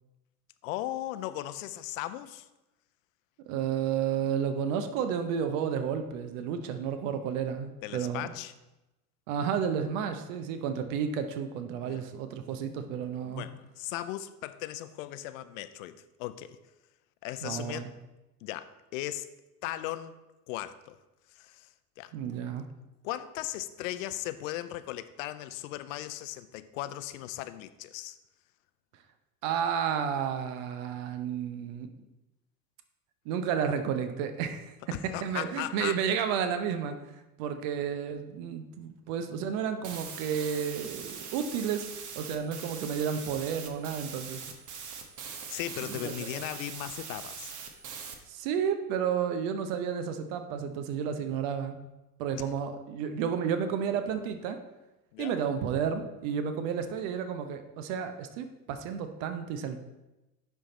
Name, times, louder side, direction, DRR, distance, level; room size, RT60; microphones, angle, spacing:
voice 1, 0.6-2.5 7.8-8.5 11.8-12.0 13.2-16.6 17.2-17.9 18.4-19.3 19.6-20.2 20.5-21.0 21.3-21.7 22.0-22.1 23.0-28.2 34.9-36.0 45.5-47.5 52.4-52.5 55.1-55.4, left 14 dB, 60° left, 13 dB, 0.6 m, -37 dB
voice 2, 3.5-8.3 9.3-13.5 17.4-17.9 22.1-22.7 29.4-31.9 33.3-37.0 37.4-41.9 42.2-44.4 45.8-46.1 48.3-51.8 52.2-54.6 55.2-59.8, right 7 dB, 60° right, 8 dB, 0.8 m, -31 dB
sound 1, 39.8-48.2, right 6 dB, 40° right, 1.1 m, -42 dB
10.5 x 3.6 x 4.1 m, 0.99 s
figure-of-eight pair, 65°, 45 cm